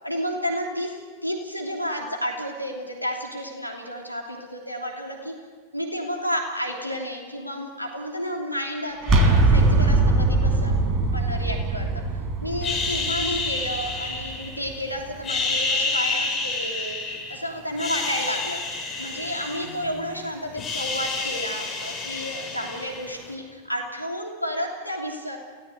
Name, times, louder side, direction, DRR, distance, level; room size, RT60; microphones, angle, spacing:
voice 1, 0.0-5.3 5.7-10.8 11.1-11.9 12.4-18.6 19.0-25.4, equal, 90° left, 1 dB, 3.0 m, -31 dB
sound 1, 9.0-14.7, right 2 dB, 30° right, 4.0 m, -21 dB
sound 2, 12.6-14.8 15.2-17.4 17.7-20.1 20.4-23.2, left 3 dB, 25° left, 6.4 m, -29 dB
29.0 x 18.5 x 8.1 m, 1.5 s
figure-of-eight pair, 90°, 0 cm